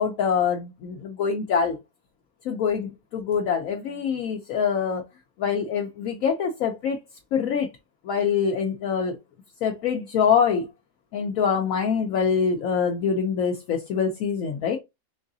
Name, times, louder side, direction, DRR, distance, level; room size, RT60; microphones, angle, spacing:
voice 1, 0.0-1.8 2.4-5.0 5.4-7.0 7.3-7.7 8.0-9.2 9.6-10.7 11.1-14.8, left 6 dB, 70° left, 1.0 m, -24 dB
3.9 x 3.6 x 2.6 m
omnidirectional pair, 1.5 m